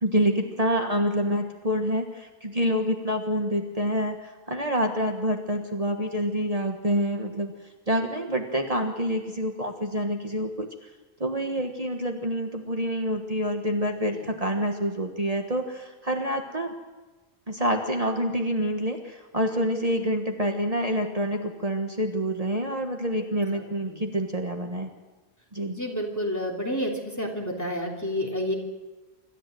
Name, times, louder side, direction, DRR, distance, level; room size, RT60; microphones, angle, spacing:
voice 1, 0.0-7.5 7.9-10.7 11.2-16.7 17.5-24.9 25.5-25.8, equal, 35° right, 3 dB, 1.5 m, -27 dB
voice 2, 25.7-26.9 27.2-28.5, equal, 15° left, -1 dB, 3.2 m, -30 dB
26.0 x 13.5 x 7.8 m, 1.2 s
omnidirectional pair, 1.0 m